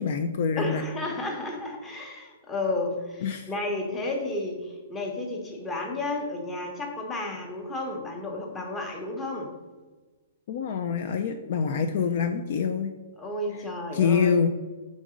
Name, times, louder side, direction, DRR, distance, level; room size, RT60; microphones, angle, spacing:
voice 1, 0.0-0.8 3.2-3.5 10.5-12.9 13.9-14.5, left 6 dB, 50° left, 6 dB, 0.4 m, -25 dB
voice 2, 0.6-9.5 13.2-14.4, left 2 dB, 10° left, 1 dB, 0.9 m, -32 dB
5.2 x 3.7 x 4.9 m, 1.3 s
hypercardioid pair, 160°, 0 cm